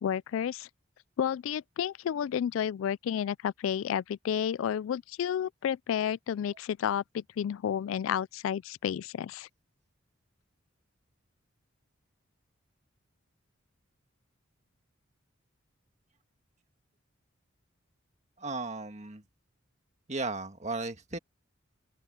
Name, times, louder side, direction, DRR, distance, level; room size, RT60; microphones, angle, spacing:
voice 1, 0.0-0.7 1.2-9.5, left 9 dB, 75° left, 0.3 m, -31 dB
voice 2, 18.4-19.2 20.1-21.2, right 3 dB, 35° right, 1.8 m, -35 dB
open air
head